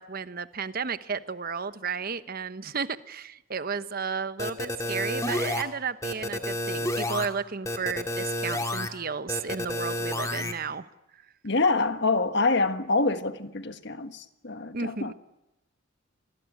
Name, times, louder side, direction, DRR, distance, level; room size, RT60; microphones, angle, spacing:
voice 1, 0.0-10.9 11.1-11.2 14.7-15.1, right 5 dB, 45° right, 1.0 m, -33 dB
sound 1, 4.4-5.6 6.0-7.3 7.7-8.9 9.3-10.5, left 1 dB, 15° left, 2.1 m, -30 dB
voice 2, 11.4-15.1, left 3 dB, 55° left, 1.5 m, -26 dB
27.0 x 20.5 x 9.8 m
head